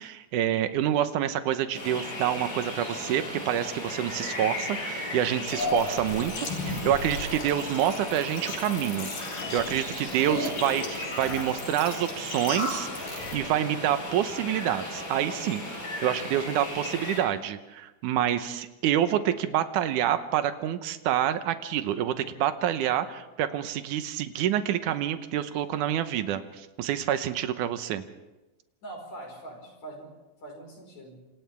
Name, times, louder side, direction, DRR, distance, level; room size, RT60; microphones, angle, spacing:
voice 1, 0.0-9.1 9.5-15.6 16.0-28.0, right 11 dB, 80° right, 10 dB, 2.4 m, -27 dB
sound 1, 1.7-17.2, left 1 dB, 30° left, 7.2 m, -36 dB
sound 2, 5.5-13.4, left 2 dB, 90° left, 5.1 m, -35 dB
voice 2, 28.8-30.1 30.4-31.2, right 2 dB, 60° left, 1 dB, 6.1 m, -42 dB
28.0 x 26.5 x 3.5 m, 1.1 s
omnidirectional pair, 3.7 m